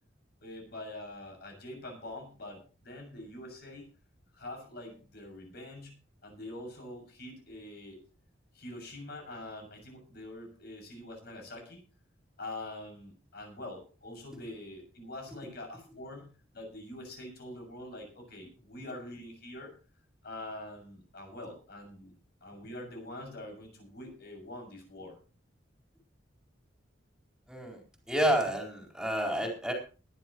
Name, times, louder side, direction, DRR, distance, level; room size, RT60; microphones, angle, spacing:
voice 1, 0.4-3.9 4.3-6.0 6.2-8.0 8.5-11.8 12.4-19.7 20.2-22.1 22.4-25.2, left 1 dB, 60° left, 3 dB, 6.7 m, -44 dB
voice 2, 27.5-27.8 28.1-29.7, right 1 dB, 5° right, 1 dB, 4.2 m, -29 dB
21.0 x 11.0 x 3.1 m, 0.36 s
head